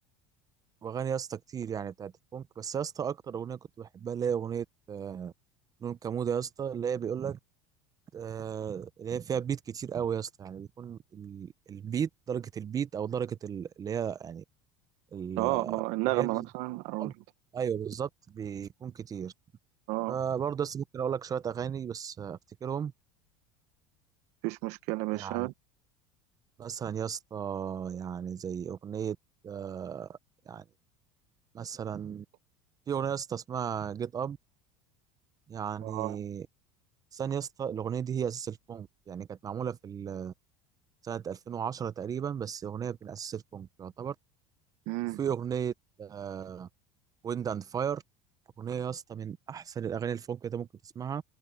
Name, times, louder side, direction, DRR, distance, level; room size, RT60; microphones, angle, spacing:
voice 1, 0.8-5.3 5.8-7.4 8.1-14.4 15.1-15.8 16.1-16.5 17.0-17.1 17.5-19.3 20.1-22.9 25.1-25.5 26.6-29.2 29.4-30.2 30.5-30.6 31.5-32.2 32.9-34.4 35.5-36.5 37.1-40.3 41.0-44.2 45.2-45.7 46.0-46.7 47.2-48.0 48.6-51.2, right 8 dB, 30° right, 0.7 m, -35 dB
voice 2, 15.4-17.1 19.9-20.2 24.4-25.5 35.8-36.2 44.9-45.2, right 21 dB, 70° right, 1.3 m, -31 dB
supercardioid pair, 115°, 12 cm